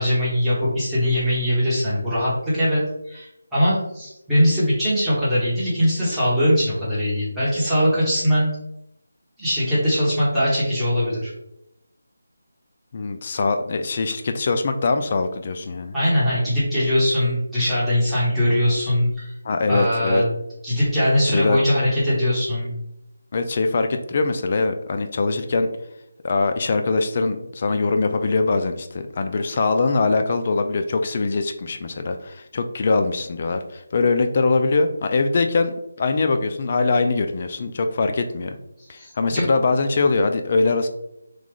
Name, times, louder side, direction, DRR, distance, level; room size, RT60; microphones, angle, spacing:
voice 1, 0.0-2.8 3.1-8.5 9.4-11.3 15.9-19.3 19.7-20.2 20.6-22.7 39.0-39.4, equal, ahead, -14 dB, 1.2 m, -21 dB
voice 2, 12.9-15.9 19.4-20.2 21.3-21.6 23.3-25.7 26.2-38.6 38.9-40.9, left 3 dB, 35° left, 7 dB, 0.3 m, -22 dB
3.1 x 2.3 x 3.7 m, 0.80 s
figure-of-eight pair, 170°, 0 cm